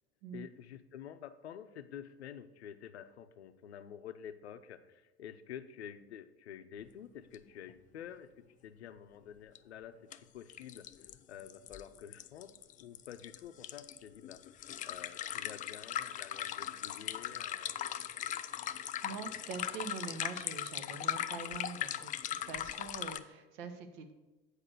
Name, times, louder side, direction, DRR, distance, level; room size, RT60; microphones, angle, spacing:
voice 1, 0.3-10.9 11.3-17.7, left 9 dB, 75° left, 11 dB, 0.6 m, -49 dB
sound 1, 7.3-7.4 7.7-7.8 9.6-9.7 10.1-10.2 10.5-23.2, left 11 dB, 25° left, 0.4 m, -39 dB
voice 2, 18.7-24.1, right 5 dB, 60° right, 7 dB, 1.1 m, -44 dB
8.6 x 4.9 x 6.3 m, 1.1 s
figure-of-eight pair, 65°, 33 cm